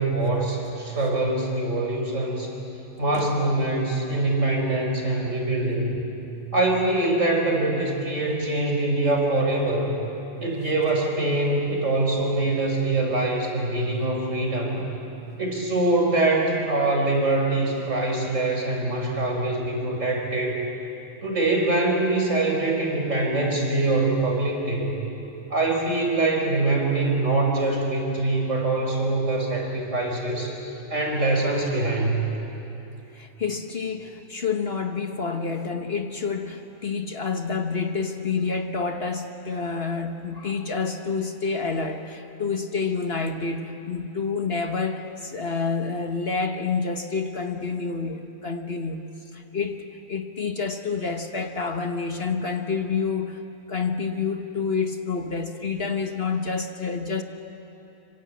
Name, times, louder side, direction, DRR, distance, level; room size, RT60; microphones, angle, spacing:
voice 1, 0.0-2.5 3.0-6.0 6.5-10.0 10.4-14.8 15.4-20.6 21.2-25.0 25.5-30.5 30.9-32.3, right 2 dB, 60° right, 1 dB, 4.9 m, -24 dB
voice 2, 33.1-49.0 49.3-53.4 53.7-57.2, left 5 dB, 45° left, 5 dB, 1.3 m, -28 dB
26.0 x 26.0 x 8.4 m, 3.0 s
omnidirectional pair, 1.5 m